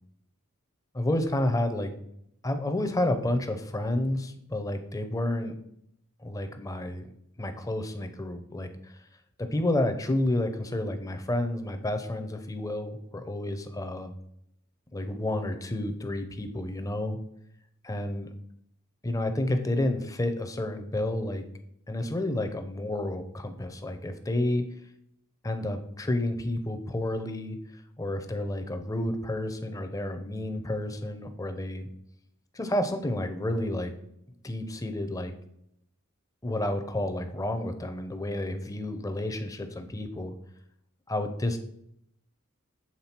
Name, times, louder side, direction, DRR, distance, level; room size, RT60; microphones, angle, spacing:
voice 1, 0.9-1.9 2.4-5.6 6.2-7.1 7.4-8.7 9.4-14.1 14.9-17.2 17.8-18.3 19.0-21.4 21.9-24.6 25.4-27.6 28.0-31.9 32.5-33.9 34.4-35.3 36.4-40.3 41.1-41.6, left 1 dB, 15° left, 7 dB, 0.5 m, -30 dB
7.4 x 3.7 x 4.3 m, 0.75 s
head